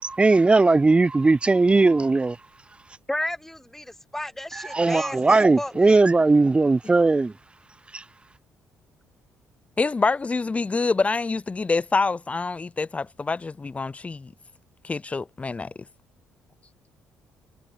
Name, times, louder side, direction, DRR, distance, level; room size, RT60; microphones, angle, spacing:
voice 1, 0.0-2.4 4.5-7.3 7.9-8.0, right 3 dB, 20° right, 2.8 m, -19 dB
voice 2, 3.1-6.0, left 1 dB, 5° left, 2.9 m, -33 dB
voice 3, 9.8-14.3 14.8-15.7, left 4 dB, 25° left, 2.7 m, -26 dB
cardioid pair, 80°, 5 cm